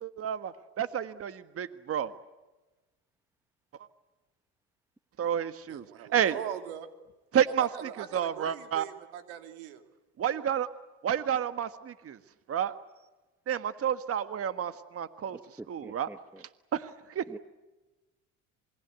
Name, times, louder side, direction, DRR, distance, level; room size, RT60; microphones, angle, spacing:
voice 1, 0.0-2.1 5.2-5.8 6.1-6.3 7.3-8.8 10.2-10.7 11.0-12.2 12.5-12.7 13.5-15.4 15.7-16.1 16.7-17.2, right 9 dB, 40° right, 12 dB, 1.6 m, -30 dB
voice 2, 5.7-6.9 7.3-9.9, right 10 dB, 85° right, 8 dB, 2.9 m, -41 dB
voice 3, 15.6-16.4 17.3-17.4, right 2 dB, 5° right, 14 dB, 1.1 m, -45 dB
27.0 x 22.5 x 8.3 m, 1.1 s
supercardioid pair, 80°, 35 cm